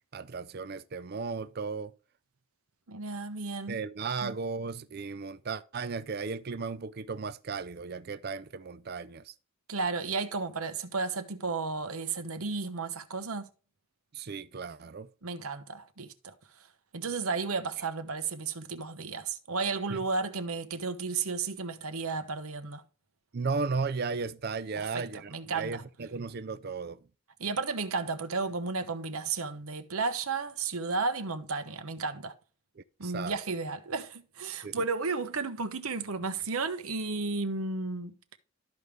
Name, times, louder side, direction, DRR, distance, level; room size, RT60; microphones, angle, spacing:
voice 1, 0.1-1.9 3.7-9.3 14.1-15.1 19.9-20.0 23.3-27.0 33.0-33.3 34.6-34.8, right 4 dB, 45° right, 0.4 m, -35 dB
voice 2, 2.9-3.8 4.2-4.3 9.7-13.5 15.2-16.3 16.9-22.8 24.8-25.8 27.4-32.4 33.0-38.4, right 4 dB, 80° right, 1.0 m, -33 dB
13.0 x 5.2 x 3.2 m
head